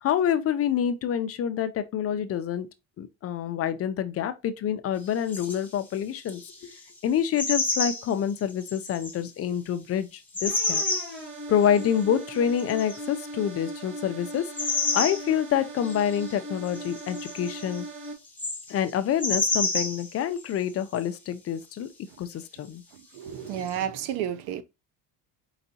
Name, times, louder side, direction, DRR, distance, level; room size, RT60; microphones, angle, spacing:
voice 1, 0.0-2.7 3.0-6.7 7.0-10.8 11.5-14.5 14.9-17.8 18.7-21.9 22.2-22.8, left 9 dB, 40° left, 0.4 m, -27 dB
sound 1, 5.3-5.7 6.3-6.8 7.3-9.2 10.3-11.2 11.6-12.0 12.6-13.0 14.4-15.3 15.8-16.4 16.6-18.9 19.2-20.1 20.4-21.0 23.6-23.8, left 3 dB, 5° left, 1.0 m, -30 dB
sound 2, 10.5-18.1, right 1 dB, 60° right, 1.8 m, -39 dB
voice 2, 22.9-24.6, right 9 dB, 80° right, 0.7 m, -32 dB
4.5 x 3.9 x 2.7 m
cardioid pair, 140°, 38 cm